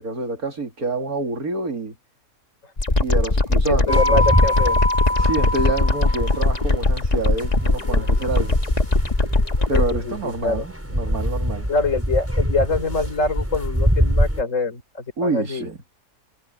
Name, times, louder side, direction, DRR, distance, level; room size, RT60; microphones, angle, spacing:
voice 1, 0.0-1.9 3.0-4.2 5.2-8.6 9.7-11.7 15.2-15.8, right 3 dB, 70° right, 3.2 m, -27 dB
sound 1, 2.8-9.9, left 2 dB, 25° left, 1.7 m, -20 dB
voice 2, 3.7-4.8 9.7-10.6 11.7-14.8 15.2-15.7, left 3 dB, 50° left, 4.3 m, -24 dB
sound 2, 3.9-14.4, equal, 10° right, 6.3 m, -24 dB
omnidirectional pair, 1.6 m